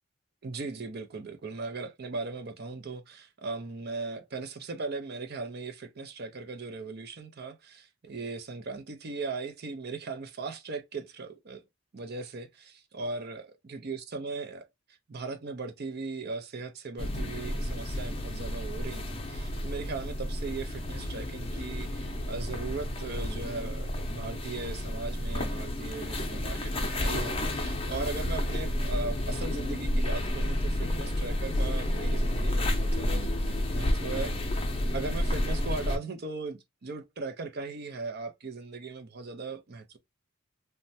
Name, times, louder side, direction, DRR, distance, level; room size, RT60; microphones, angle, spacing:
voice 1, 0.4-11.6 11.9-13.4 13.7-14.7 15.1-34.3 34.9-40.0, right 3 dB, 45° right, 0.5 m, -38 dB
sound 1, 17.0-36.0, left 1 dB, 25° left, 0.6 m, -31 dB
3.1 x 2.1 x 2.6 m
head